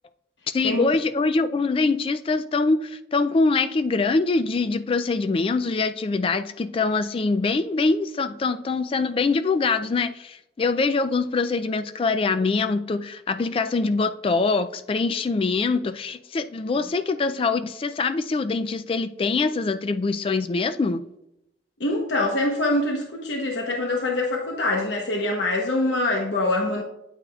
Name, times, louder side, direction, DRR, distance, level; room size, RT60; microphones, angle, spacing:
voice 1, 0.5-21.0, left 3 dB, 30° left, 0.3 m, -24 dB
voice 2, 21.8-26.8, left 2 dB, 85° left, 1.0 m, -24 dB
8.4 x 8.3 x 2.4 m
head